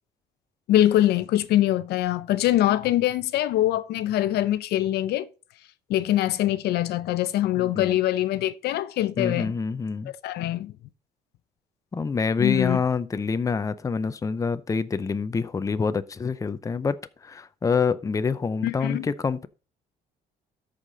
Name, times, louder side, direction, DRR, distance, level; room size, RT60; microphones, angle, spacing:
voice 1, 0.7-5.3 5.9-9.5 10.2-10.7 12.4-12.8 18.6-19.1, left 13 dB, 75° left, 0.6 m, -23 dB
voice 2, 7.5-8.0 9.2-10.1 11.9-19.5, left 5 dB, 20° left, 0.6 m, -26 dB
13.0 x 5.0 x 4.0 m
cardioid pair, 110°, 17 cm